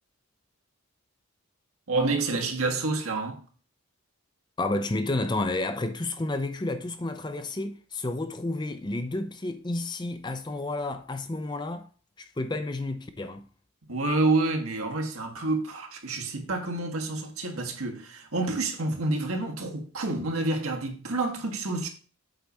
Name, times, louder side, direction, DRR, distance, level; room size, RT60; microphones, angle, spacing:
voice 1, 1.9-3.4 13.9-21.9, right 2 dB, 75° right, 1.5 m, -28 dB
voice 2, 4.6-11.9 12.2-13.5, left 2 dB, 20° left, 0.5 m, -31 dB
7.8 x 4.8 x 4.2 m
head